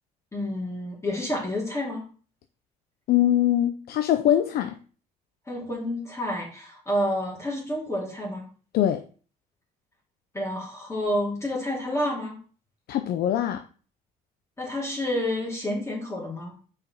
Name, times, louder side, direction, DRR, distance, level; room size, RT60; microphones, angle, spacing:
voice 1, 0.3-2.0 5.5-8.5 10.3-12.4 14.6-16.5, left 1 dB, 15° left, 2.5 m, -29 dB
voice 2, 3.1-4.8 8.7-9.0 12.9-13.6, left 11 dB, 65° left, 0.6 m, -22 dB
5.4 x 4.8 x 5.7 m
cardioid pair, 110°, 17 cm